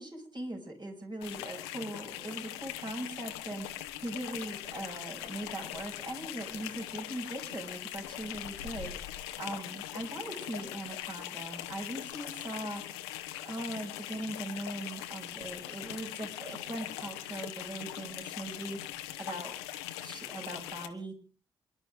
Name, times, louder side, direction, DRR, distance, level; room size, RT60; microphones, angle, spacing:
voice 1, 0.0-12.8 13.4-18.8 19.2-19.5 20.0-21.2, right 1 dB, 35° right, 2 dB, 7.0 m, -40 dB
sound 1, 1.2-20.9, left 13 dB, 85° left, 1.2 m, -41 dB
28.5 x 12.0 x 3.8 m, 0.37 s
hypercardioid pair, 40°, 13 cm